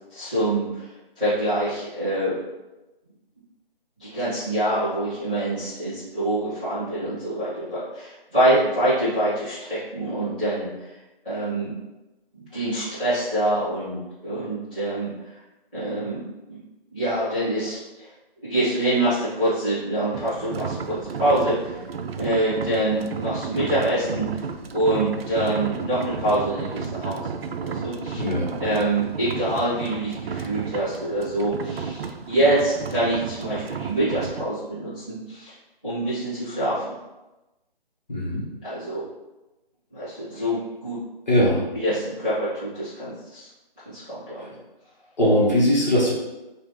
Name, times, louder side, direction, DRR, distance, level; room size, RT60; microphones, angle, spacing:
voice 1, 0.1-0.9 1.2-2.4 4.0-10.9 11.2-11.7 12.3-15.1 15.7-16.6 16.9-18.1 18.4-21.8 22.1-24.5 24.7-27.3 27.6-28.2 28.6-35.5 35.8-36.9 38.6-39.0 39.9-41.0 41.7-43.5 43.8-44.3, right 1 dB, 10° left, -21 dB, 0.9 m, -25 dB
sound 1, 20.1-34.5, right 6 dB, 85° right, 0.4 m, -33 dB
voice 2, 38.1-38.4 41.3-41.6 44.4-44.5 45.2-46.1, equal, 50° left, -6 dB, 1.2 m, -20 dB
3.0 x 2.5 x 3.7 m, 1.0 s
figure-of-eight pair, 175°, 29 cm